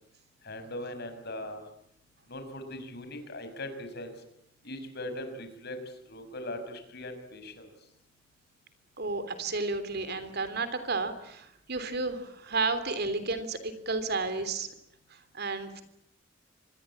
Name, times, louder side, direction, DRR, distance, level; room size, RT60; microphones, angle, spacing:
voice 1, 0.4-1.6 2.3-4.1 4.6-5.8 6.1-7.7, left 1 dB, 55° left, 8 dB, 5.8 m, -40 dB
voice 2, 9.0-14.7 15.1-15.8, right 3 dB, 55° right, 11 dB, 3.2 m, -32 dB
26.0 x 21.0 x 8.7 m, 0.73 s
head